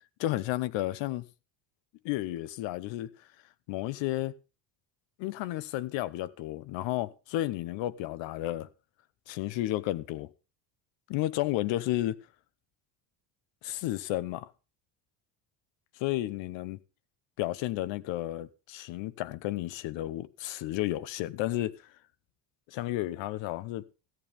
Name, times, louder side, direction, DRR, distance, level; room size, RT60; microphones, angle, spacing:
voice 1, 0.2-1.2 2.0-3.1 3.7-4.3 5.2-8.7 9.3-10.3 11.1-12.2 13.6-14.5 16.0-16.8 17.4-21.7 22.7-23.8, left 15 dB, 75° left, 1.1 m, -32 dB
14.5 x 9.0 x 5.3 m
cardioid pair, 140°, 45 cm